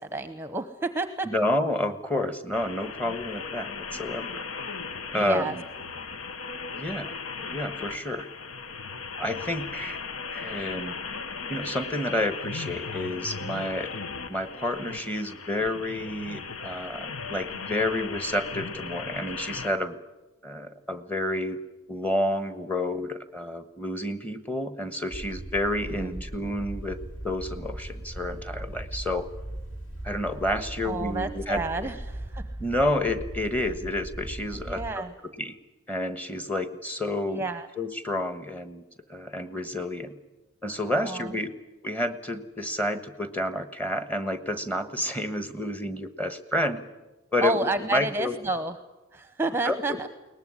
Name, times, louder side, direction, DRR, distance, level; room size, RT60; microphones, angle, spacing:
voice 1, 0.0-1.3 5.1-5.6 26.0-26.2 30.8-32.5 34.5-35.1 37.3-37.7 40.9-41.4 47.4-48.7 49.1-50.1, right 2 dB, 10° right, 9 dB, 0.9 m, -30 dB
voice 2, 1.2-4.5 5.1-5.6 6.7-7.2 7.5-8.3 9.2-10.0 10.3-11.0 11.5-13.9 14.3-20.0 20.4-21.6 21.9-27.0 27.2-29.3 30.0-31.9 32.6-35.0 35.4-35.6 35.9-37.4 37.8-38.8 39.1-40.1 40.6-41.5 41.8-46.8 47.3-48.4 49.6-50.1, left 1 dB, 10° left, 9 dB, 1.3 m, -30 dB
sound 1, 2.5-19.7, left 5 dB, 80° left, 1.1 m, -37 dB
sound 2, 25.1-34.9, right 1 dB, 65° left, 3.4 m, -38 dB
22.0 x 19.0 x 9.7 m, 1.1 s
head